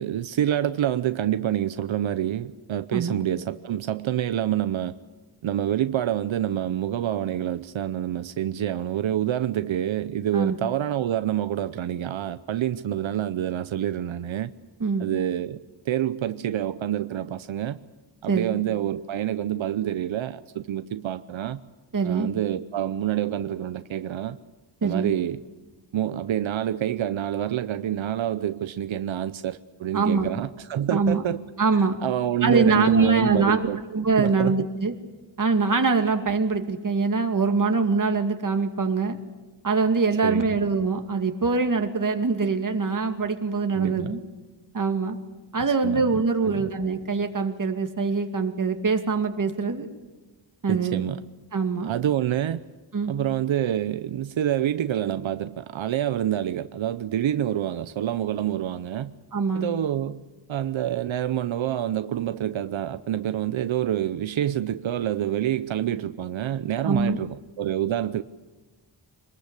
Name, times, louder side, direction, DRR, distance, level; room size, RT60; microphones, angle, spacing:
voice 1, 0.0-4.9 5.4-14.5 15.0-15.6 15.9-17.8 18.2-21.6 22.0-24.4 24.8-25.4 25.9-31.4 32.0-33.8 34.2-34.7 40.2-40.6 43.7-44.1 45.8-46.0 46.4-46.7 50.7-51.2 51.8-52.6 53.1-59.1 59.5-60.2 60.5-68.2, right 11 dB, 85° right, 12 dB, 0.8 m, -27 dB
voice 2, 21.9-22.3 24.8-25.1 29.9-30.3 30.9-31.2 31.6-32.0 32.4-33.7 33.9-34.9 35.4-39.2 39.6-44.2 44.7-45.2 45.5-49.9 50.6-51.0 51.5-51.9 52.9-53.1 59.3-59.7 66.8-67.2, right 4 dB, 45° right, 5 dB, 2.5 m, -23 dB
26.0 x 20.5 x 8.3 m, 1.2 s
wide cardioid pair, 105°, 46 cm